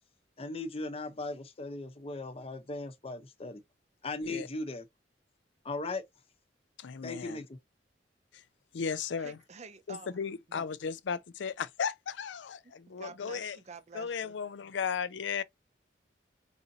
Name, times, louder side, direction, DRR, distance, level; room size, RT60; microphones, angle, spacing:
voice 1, 0.4-3.6 4.0-4.9 5.6-6.0 7.0-7.6, left 2 dB, 30° left, 0.7 m, -38 dB
voice 2, 6.8-7.4 8.3-8.4 8.7-9.4 9.9-13.6 13.9-15.4, left 6 dB, 80° left, 0.4 m, -35 dB
voice 3, 9.2-10.2 10.5-10.6 13.0-14.3, right 4 dB, 40° right, 0.5 m, -48 dB
4.9 x 2.6 x 2.7 m
head